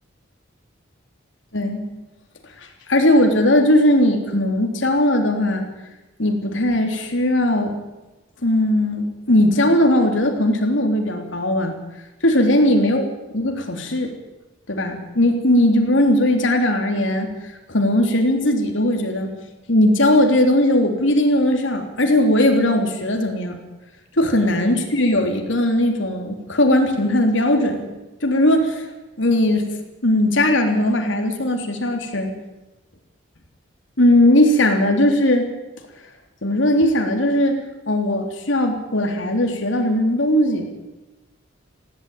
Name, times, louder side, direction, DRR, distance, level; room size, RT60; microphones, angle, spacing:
voice 1, 1.5-1.9 2.6-5.7 6.2-7.7 8.4-11.8 12.2-13.0 13.3-14.1 14.7-19.3 19.7-23.6 24.2-27.9 28.2-28.9 29.2-29.8 30.0-32.3 34.0-35.5 36.4-40.7, left 1 dB, 75° left, 3 dB, 3.3 m, -18 dB
19.0 x 16.0 x 9.2 m, 1.1 s
head